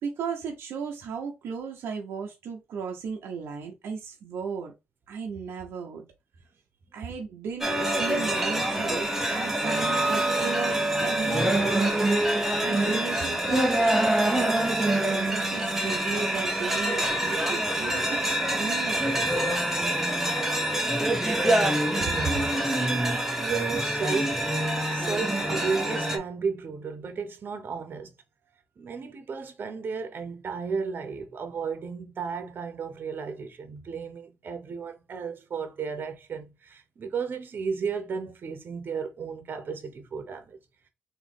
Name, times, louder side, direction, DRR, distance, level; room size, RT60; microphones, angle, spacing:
voice 1, 0.0-4.7 5.1-6.0 6.9-12.0 12.6-18.2 18.5-19.3 22.0-22.5, right 6 dB, 90° right, 0.8 m, -35 dB
sound 1, 7.6-26.2, right 1 dB, 10° right, 1.1 m, -25 dB
voice 2, 22.7-24.5 24.9-28.1 28.8-40.6, right 5 dB, 60° right, 1.0 m, -34 dB
3.8 x 3.0 x 3.4 m
cardioid pair, 80°, 4 cm